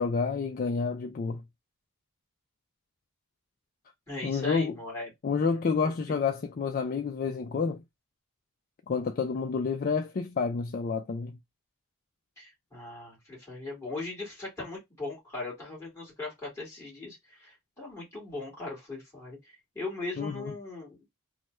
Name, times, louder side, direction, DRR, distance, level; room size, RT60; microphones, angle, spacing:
voice 1, 0.0-1.4 4.2-4.7 5.2-7.8 8.9-11.4 20.2-20.5, left 5 dB, 40° left, 0.3 m, -29 dB
voice 2, 4.1-5.1 5.8-5.9 12.4-21.0, left 2 dB, 10° left, 1.8 m, -39 dB
3.1 x 2.2 x 3.0 m
head